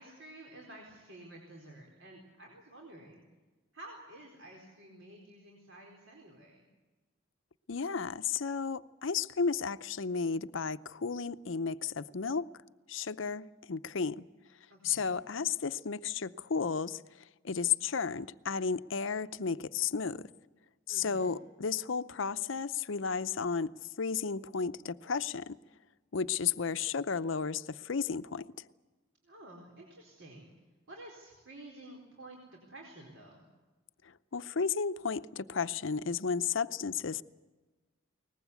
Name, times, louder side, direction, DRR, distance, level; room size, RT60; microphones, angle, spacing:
voice 1, 0.0-3.2 3.7-6.6 14.7-15.1 20.9-21.3 29.2-30.5 30.9-32.4 32.7-33.4, right 1 dB, 70° right, 4.3 m, -51 dB
voice 2, 7.7-12.5 12.9-14.3 14.8-17.0 17.4-20.3 20.9-23.7 24.0-25.6 26.1-28.6 34.3-37.2, left 5 dB, 65° left, 0.6 m, -33 dB
22.5 x 20.0 x 8.3 m
head